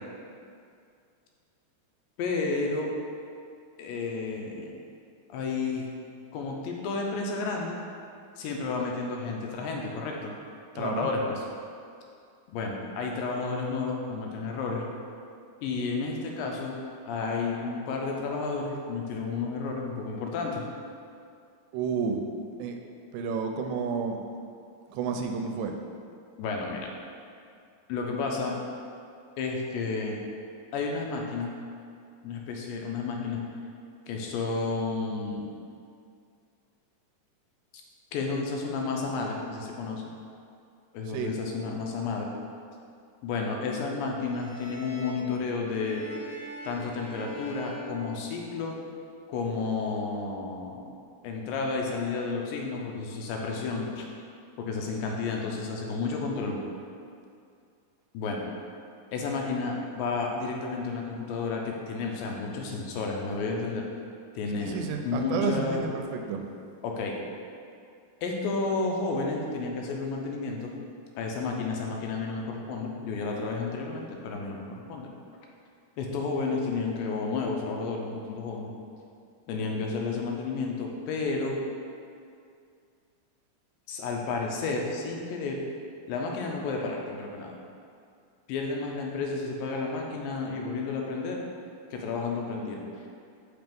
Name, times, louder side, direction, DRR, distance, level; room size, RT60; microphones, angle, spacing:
voice 1, 2.2-2.9 3.8-4.7 5.3-5.9 6.3-7.7 8.4-10.3 10.8-11.4 12.5-14.9 15.6-16.8 17.1-20.7 26.4-26.9 27.9-28.5 29.4-30.2 30.7-31.5 32.2-33.4 34.1-35.5 38.1-40.0 40.9-42.3 43.2-46.0 46.6-48.8 49.3-50.9 51.2-54.0 54.6-56.6 58.1-58.5 59.1-63.8 64.4-65.8 66.8-67.2 68.2-70.7 71.2-75.1 76.0-78.7 79.5-81.6 83.9-85.6 86.1-87.5 88.5-91.4 91.9-93.1, left 4 dB, 90° left, 0 dB, 2.4 m, -31 dB
voice 2, 10.8-11.1 21.7-22.2 22.6-22.8 23.1-24.2 24.9-25.8 41.1-41.3 64.6-66.4, right 5 dB, 85° right, 4 dB, 2.1 m, -30 dB
sound 1, 44.2-48.8, right 1 dB, 60° left, 1.7 m, -44 dB
5.8 x 3.4 x 5.1 m, 2.4 s
omnidirectional pair, 3.9 m